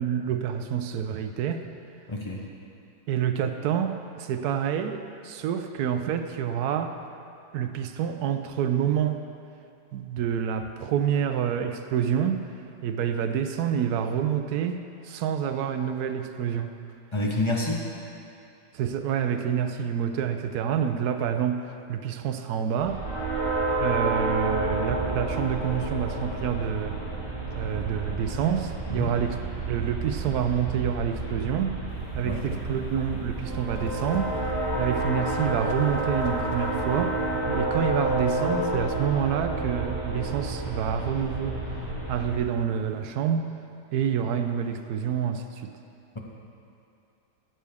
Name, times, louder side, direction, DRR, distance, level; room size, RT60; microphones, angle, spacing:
voice 1, 0.0-1.6 3.1-7.0 7.5-9.2 9.9-12.4 12.8-16.7 18.7-23.0 23.8-27.0 27.5-29.4 29.7-31.8 32.2-34.4 34.8-37.2 37.5-41.6 42.1-43.5 43.9-45.7, right 8 dB, 70° right, 7 dB, 1.0 m, -27 dB
voice 2, 2.1-2.5 17.1-17.8 28.9-29.2 32.2-32.5, left 1 dB, 30° left, -2 dB, 0.5 m, -28 dB
sound 1, 22.8-42.4, right 2 dB, 30° right, 2.5 m, -30 dB
Whoosh swoosh swish, 31.9-37.4, left 6 dB, 65° left, 1.0 m, -44 dB
15.0 x 7.4 x 3.5 m, 2.6 s
omnidirectional pair, 1.9 m